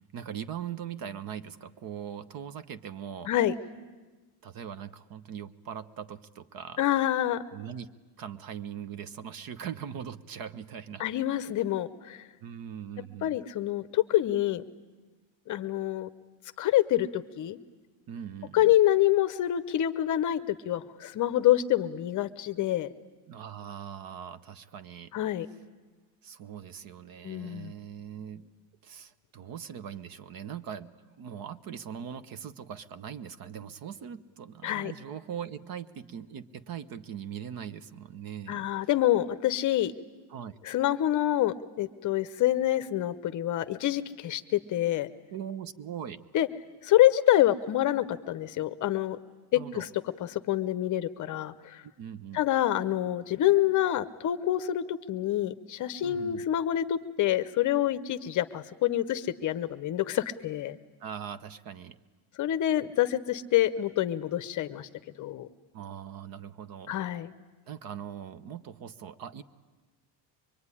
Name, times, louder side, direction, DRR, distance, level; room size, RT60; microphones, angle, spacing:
voice 1, 0.1-3.3 4.4-6.8 7.5-7.9 8.2-11.0 12.4-13.4 18.1-18.7 23.3-25.2 26.2-28.5 28.8-30.9 31.2-38.7 40.3-40.6 45.3-46.2 49.5-49.9 51.8-52.4 56.0-56.4 61.0-62.0 65.7-67.2 67.7-69.4, right 8 dB, 45° right, 14 dB, 0.9 m, -41 dB
voice 2, 6.8-7.4 11.0-12.2 13.2-14.6 15.5-16.1 16.6-17.6 18.5-22.9 25.1-25.5 27.2-27.7 34.6-34.9 38.5-39.9 40.6-45.1 46.3-46.5 46.8-49.2 49.5-49.9 50.2-51.8 52.3-60.8 62.4-64.9 65.2-65.5 66.9-67.3, left 13 dB, 40° left, 13 dB, 0.8 m, -27 dB
24.0 x 22.5 x 9.8 m, 1.3 s
cardioid pair, 165°, 48 cm